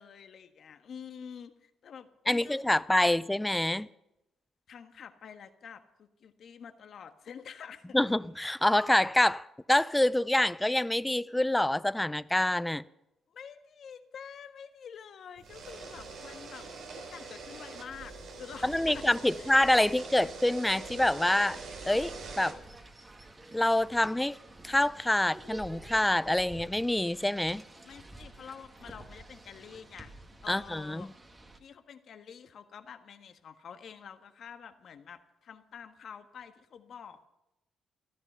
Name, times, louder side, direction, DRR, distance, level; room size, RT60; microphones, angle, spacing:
voice 1, 0.0-3.1 4.7-8.1 13.3-16.7 16.9-19.5 27.8-30.1 30.4-31.1 31.6-37.2, left 7 dB, 60° left, 1.4 m, -48 dB
voice 2, 2.3-3.9 7.9-12.8 18.6-21.6 21.8-22.6 23.5-24.4 24.6-27.6 30.5-31.1, left 1 dB, 10° left, 0.5 m, -26 dB
sound 1, 15.4-22.5, right 4 dB, 75° right, 3.9 m, -44 dB
sound 2, 21.5-31.6, right 2 dB, 25° right, 2.0 m, -50 dB
15.5 x 13.5 x 5.6 m
cardioid pair, 90°, 0 cm